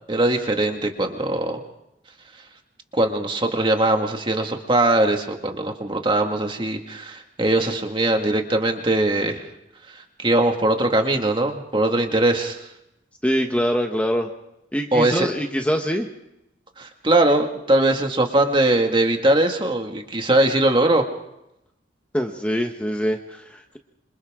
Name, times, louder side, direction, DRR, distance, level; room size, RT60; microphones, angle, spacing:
voice 1, 0.1-1.6 2.9-9.4 9.9-12.6 14.9-15.3 16.8-21.0, right 1 dB, 25° right, 3 dB, 2.1 m, -21 dB
voice 2, 13.2-14.3 14.7-16.1 22.1-23.8, equal, 5° left, 3 dB, 1.2 m, -24 dB
27.0 x 26.5 x 3.8 m, 0.86 s
head